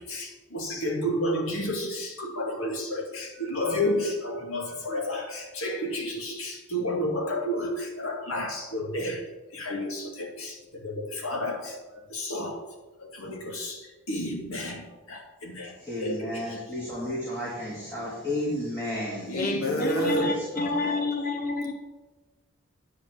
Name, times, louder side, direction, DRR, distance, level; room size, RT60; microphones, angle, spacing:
voice 1, 0.0-9.2 9.5-11.8 12.1-12.6 13.0-15.7 16.0-16.3 19.3-20.3 20.6-20.7, left 1 dB, 80° left, 1 dB, 2.3 m, -31 dB
voice 2, 15.8-19.3 19.9-21.1, left 1 dB, 15° left, -8 dB, 2.2 m, -33 dB
voice 3, 19.3-21.7, left 3 dB, 40° left, 3 dB, 1.0 m, -29 dB
9.2 x 5.3 x 8.0 m, 1.1 s
head